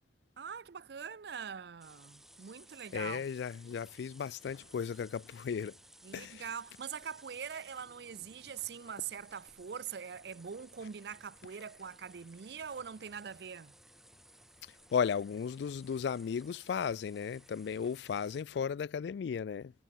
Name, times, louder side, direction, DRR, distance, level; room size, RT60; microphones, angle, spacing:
voice 1, 0.4-3.2 6.0-13.7, right 7 dB, 60° right, 0.5 m, -43 dB
sound 1, 1.8-18.4, right 1 dB, ahead, 1.4 m, -59 dB
voice 2, 2.9-5.8 6.1-6.5 14.9-19.7, left 7 dB, 65° left, 0.3 m, -35 dB
head